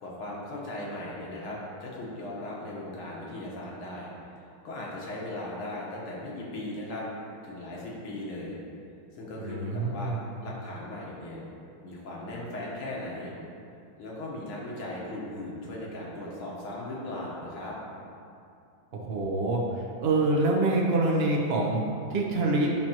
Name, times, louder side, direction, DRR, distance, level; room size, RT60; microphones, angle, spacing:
voice 1, 0.0-4.1 4.6-7.1 7.4-8.6 9.1-10.1 10.4-11.4 11.8-13.3 14.0-17.8, left 1 dB, 80° left, -4 dB, 2.2 m, -38 dB
voice 2, 9.4-10.3 18.9-21.8 22.1-22.8, right 2 dB, 55° right, -2 dB, 0.7 m, -26 dB
9.2 x 6.0 x 3.0 m, 2.5 s
omnidirectional pair, 2.3 m